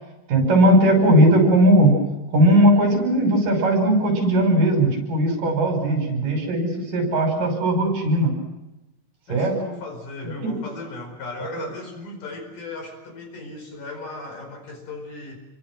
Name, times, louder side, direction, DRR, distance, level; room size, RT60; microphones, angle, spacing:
voice 1, 0.3-2.0 2.3-8.3 9.3-9.5 10.4-10.6 11.4-11.5, right 1 dB, 60° right, 3 dB, 7.3 m, -18 dB
voice 2, 9.3-15.4, left 3 dB, 60° left, 4 dB, 6.2 m, -36 dB
28.0 x 24.0 x 6.3 m, 0.99 s
omnidirectional pair, 4.2 m